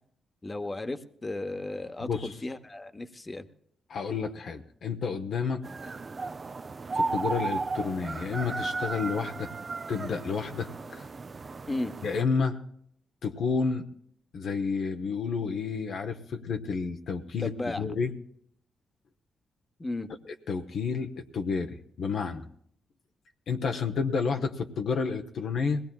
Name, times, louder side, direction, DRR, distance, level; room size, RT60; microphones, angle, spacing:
voice 1, 0.4-3.5 11.7-11.9 17.4-17.8 19.8-20.1, left 2 dB, 25° left, 9 dB, 0.9 m, -34 dB
voice 2, 2.0-2.3 3.9-5.9 6.9-9.5 9.9-11.1 12.0-12.6 13.2-13.8 14.3-18.1 20.2-22.5 23.5-25.8, left 5 dB, 70° left, 5 dB, 0.7 m, -30 dB
sound 1, 5.6-12.2, right 3 dB, 45° right, 0.4 m, -34 dB
22.0 x 18.0 x 2.3 m, 0.67 s
supercardioid pair, 50°, 0 cm